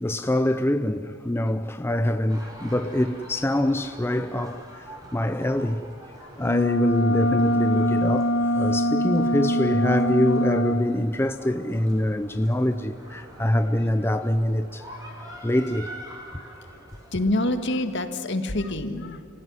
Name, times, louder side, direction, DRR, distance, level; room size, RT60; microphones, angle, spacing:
voice 1, 0.0-4.8 5.1-5.8 6.4-14.8 15.4-16.0, left 1 dB, 10° left, 0.6 m, -24 dB
sound 1, 2.3-18.1, right 1 dB, 20° right, 4.1 m, -46 dB
sound 2, 6.4-10.9, equal, 85° left, 1.9 m, -23 dB
voice 2, 14.7-15.4 16.4-16.6 17.1-19.3, left 1 dB, 60° left, 1.8 m, -28 dB
29.0 x 16.0 x 9.7 m
head